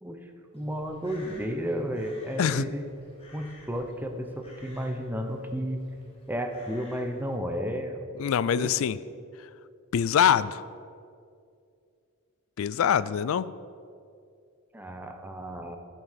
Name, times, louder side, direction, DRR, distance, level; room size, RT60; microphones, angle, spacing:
voice 1, 0.0-2.8 3.3-5.8 6.3-8.0 8.6-8.7 14.7-15.8, equal, 10° right, 4 dB, 0.7 m, -33 dB
Crow, 0.5-7.4, left 2 dB, 25° left, 1.9 m, -54 dB
voice 2, 8.2-9.0 9.9-10.6 12.6-13.5, left 8 dB, 65° left, 17 dB, 0.3 m, -24 dB
9.3 x 6.2 x 6.6 m, 2.4 s
head